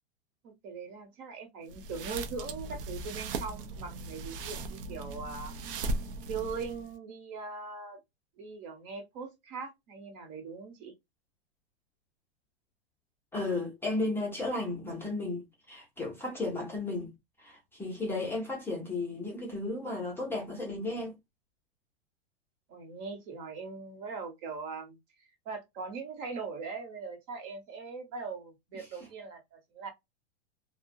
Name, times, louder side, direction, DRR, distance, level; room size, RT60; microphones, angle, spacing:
voice 1, 0.4-5.5 6.3-8.0 8.4-10.9 22.7-29.9, right 4 dB, 45° right, 1.0 m, -41 dB
sound 1, 1.7-6.9, right 2 dB, 60° right, 0.6 m, -38 dB
voice 2, 13.3-17.1 17.4-21.1, left 2 dB, 5° left, 0.6 m, -34 dB
2.3 x 2.1 x 2.6 m
supercardioid pair, 140°, 31 cm